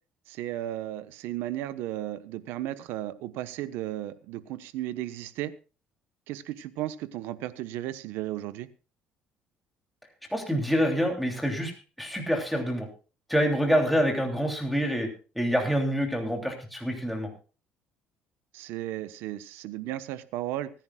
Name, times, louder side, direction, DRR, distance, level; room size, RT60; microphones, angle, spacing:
voice 1, 0.3-5.5 6.3-8.7 18.5-20.7, right 14 dB, 80° right, 13 dB, 1.1 m, -34 dB
voice 2, 10.3-11.7 12.0-12.9 13.3-15.1 15.3-17.3, equal, ahead, 2 dB, 3.0 m, -26 dB
25.0 x 10.5 x 2.4 m, 0.34 s
cardioid pair, 115°, 4 cm